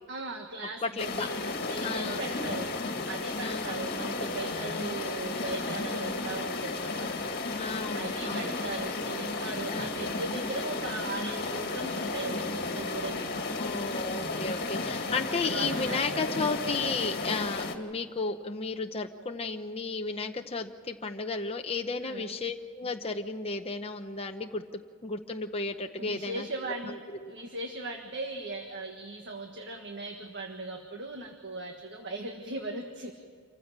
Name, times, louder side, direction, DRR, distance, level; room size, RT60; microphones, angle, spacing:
voice 1, 0.1-2.7 3.1-7.2 7.9-13.7 15.1-16.4 22.0-22.4 26.0-27.0 27.3-33.1, right 2 dB, 55° right, 4 dB, 1.6 m, -38 dB
voice 2, 0.8-1.3 1.8-2.3 3.4-3.9 5.9-6.3 7.6-8.6 9.7-10.2 13.6-26.5 27.2-27.3, left 3 dB, 25° left, 4 dB, 0.8 m, -34 dB
sound 1, 1.0-17.7, left 3 dB, 45° left, 1.9 m, -33 dB
27.0 x 15.0 x 7.4 m, 2.2 s
head